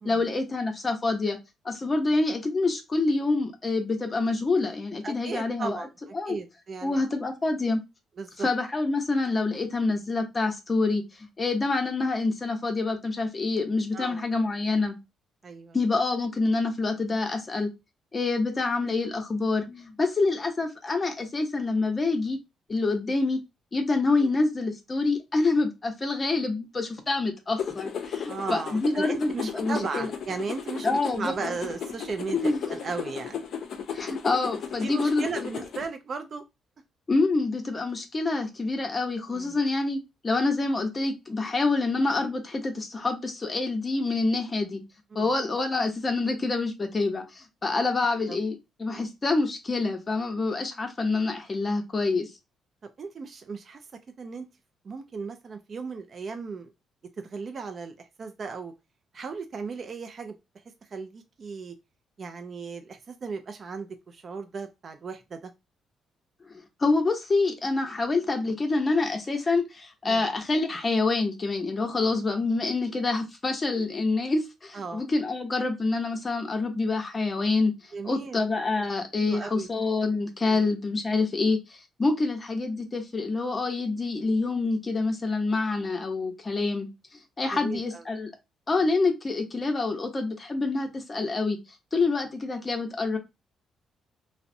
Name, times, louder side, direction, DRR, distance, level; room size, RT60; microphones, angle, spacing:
voice 1, 0.0-1.4 1.6-5.8 6.1-6.4 6.8-7.8 8.4-15.0 15.7-17.7 18.1-22.4 22.7-23.4 23.7-30.1 30.8-31.5 32.3-32.6 33.9-35.2 37.1-40.0 40.2-44.8 45.1-52.3 66.5-77.7 78.0-86.9 87.4-88.3 88.7-91.6 91.9-93.2, left 3 dB, 30° left, 0.7 m, -27 dB
voice 2, 5.0-7.0 8.2-8.5 13.9-14.2 15.4-15.8 24.2-24.3 28.3-30.9 31.1-33.4 34.8-36.4 39.3-39.6 45.1-45.3 48.3-48.4 53.0-53.8 54.2-54.5 54.8-56.7 57.2-58.7 59.1-60.4 60.8-61.7 62.2-65.5 70.0-70.3 74.7-75.1 77.9-78.4 79.2-79.7 80.4-80.7 87.5-88.0, right 4 dB, 45° right, 0.4 m, -36 dB
sound 1, 27.6-35.9, left 7 dB, 65° left, 0.5 m, -35 dB
2.5 x 2.1 x 2.5 m
cardioid pair, 90°, 0 cm